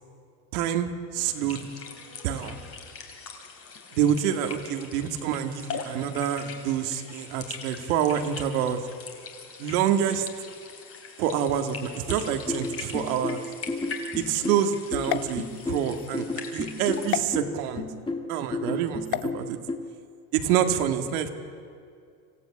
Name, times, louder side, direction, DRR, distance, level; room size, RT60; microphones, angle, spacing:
voice 1, 0.5-1.7 2.2-2.6 3.9-8.8 9.6-10.3 11.2-13.4 14.2-16.2 16.5-17.8 18.3-19.6 20.3-21.3, right 9 dB, 80° right, 6 dB, 2.1 m, -27 dB
sound 1, 1.2-17.2, left 5 dB, 30° left, 3.3 m, -42 dB
sound 2, 12.1-19.8, left 2 dB, 10° left, 1.6 m, -32 dB
sound 3, 15.0-16.1 17.1-17.3 19.0-19.3, left 16 dB, 85° left, 0.9 m, -31 dB
26.0 x 15.5 x 8.7 m, 2.3 s
supercardioid pair, 135°, 44 cm